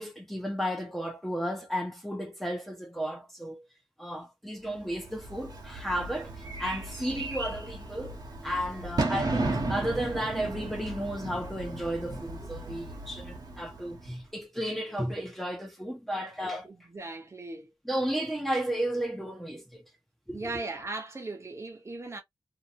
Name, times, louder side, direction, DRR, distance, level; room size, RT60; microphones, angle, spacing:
voice 1, 0.0-3.6 4.0-8.2 8.4-16.7 17.8-19.8 20.3-20.5, equal, 5° left, 0.9 m, -33 dB
Bird / Fireworks, 5.0-14.2, right 2 dB, 55° right, 1.2 m, -35 dB
voice 2, 16.6-17.7 20.3-22.2, right 3 dB, 35° right, 0.9 m, -38 dB
2.9 x 2.6 x 2.5 m
wide cardioid pair, 110°, 8 cm